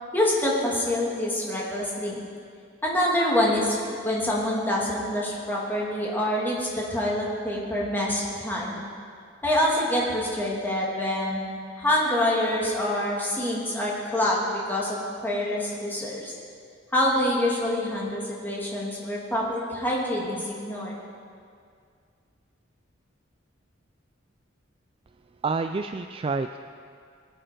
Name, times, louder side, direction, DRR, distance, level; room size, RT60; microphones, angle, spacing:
voice 1, 0.1-2.2 2.8-8.8 9.4-11.4 11.8-16.3 16.9-20.9, left 1 dB, 10° left, -5 dB, 2.6 m, -26 dB
voice 2, 25.4-26.6, right 4 dB, 30° right, 8 dB, 0.3 m, -28 dB
21.5 x 8.9 x 4.6 m, 2.2 s
head